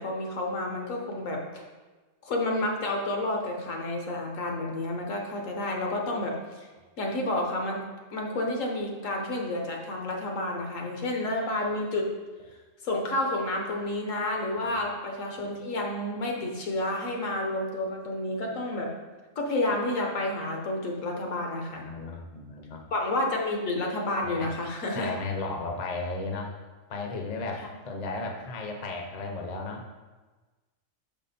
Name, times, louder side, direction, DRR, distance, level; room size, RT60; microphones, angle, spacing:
voice 1, 0.0-1.6 2.2-6.7 7.0-7.8 8.1-12.1 12.8-18.9 19.4-21.8 22.9-25.1 27.6-27.7, left 1 dB, 75° left, 1 dB, 1.4 m, -30 dB
voice 2, 21.7-22.9 24.2-24.5 24.9-26.6 26.9-30.0, left 3 dB, 40° left, 2 dB, 0.7 m, -35 dB
5.9 x 5.4 x 4.2 m, 1.3 s
omnidirectional pair, 1.4 m